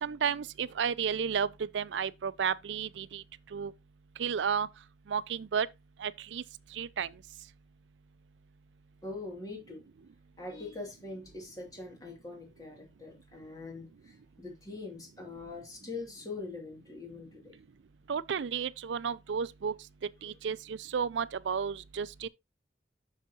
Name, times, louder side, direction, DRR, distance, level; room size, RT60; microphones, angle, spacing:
voice 1, 0.0-1.5 1.7-3.2 3.5-3.7 4.2-4.7 5.1-5.7 6.0-6.4 6.7-7.1 18.1-19.7 20.2-22.3, right 7 dB, 85° right, 0.4 m, -32 dB
voice 2, 9.0-9.8 10.4-17.6, left 3 dB, 20° left, 2.5 m, -43 dB
8.2 x 6.4 x 2.8 m
head